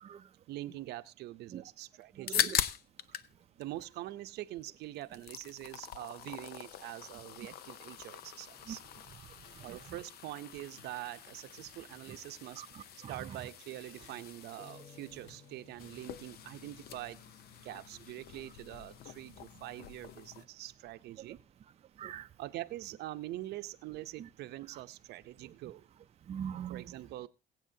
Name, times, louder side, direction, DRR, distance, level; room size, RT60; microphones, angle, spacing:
voice 1, 0.5-2.5 3.6-8.8 9.6-17.2 17.6-21.4 22.4-25.9 26.7-27.3, right 15 dB, 75° right, 0.7 m, -44 dB
sound 1, 2.0-3.3 3.6-4.6 4.9-20.5, left 10 dB, 70° left, 0.7 m, -42 dB
voice 2, 2.2-2.6 8.7-8.8 9.5-9.8 12.6-13.2 22.0-22.3 24.2-24.3 26.3-26.8, right 9 dB, 40° right, 0.5 m, -42 dB
sound 2, 9.4-10.2 10.4-13.4 13.8-14.7 15.0-16.4, left 3 dB, 90° left, 3.1 m, -64 dB
sound 3, 14.6-18.0, left 6 dB, 35° left, 3.8 m, -59 dB
22.0 x 8.4 x 2.7 m
cardioid pair, 110°, 17 cm